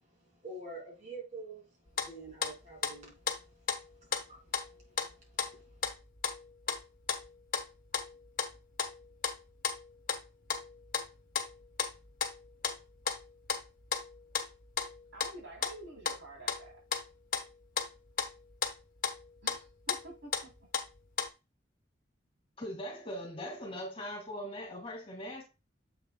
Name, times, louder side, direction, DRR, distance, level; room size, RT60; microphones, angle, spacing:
voice 1, 0.0-5.8, right 3 dB, 40° right, 2.8 m, -49 dB
sound 1, 1.9-2.5 2.8-4.2 4.5-17.5 17.8-21.3, left 6 dB, 50° left, 1.2 m, -35 dB
voice 2, 15.1-16.8 19.4-20.7, right 1 dB, 85° right, 3.5 m, -49 dB
voice 3, 22.6-25.4, equal, 30° left, 2.2 m, -40 dB
7.7 x 6.7 x 2.3 m
head